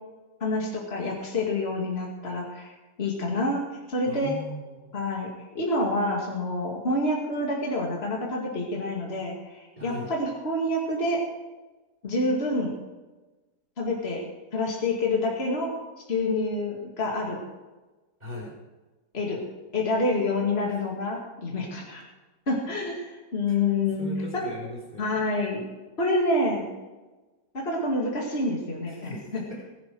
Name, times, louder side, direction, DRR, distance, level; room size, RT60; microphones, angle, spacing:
voice 1, 0.4-3.6 3.9-4.3 4.9-5.3 5.5-11.2 12.0-12.7 13.8-14.2 14.5-15.7 16.1-17.4 19.1-19.4 19.7-22.1 22.5-24.4 25.0-25.6 26.0-26.7 27.5-29.4, left 2 dB, 35° left, -2 dB, 2.6 m, -27 dB
voice 2, 4.0-4.9 9.8-10.1 18.2-18.5 20.7-20.8 23.5-23.6 24.0-25.2 28.9-29.6, equal, 25° right, -3 dB, 3.7 m, -39 dB
20.5 x 10.5 x 4.8 m, 1.2 s
omnidirectional pair, 1.8 m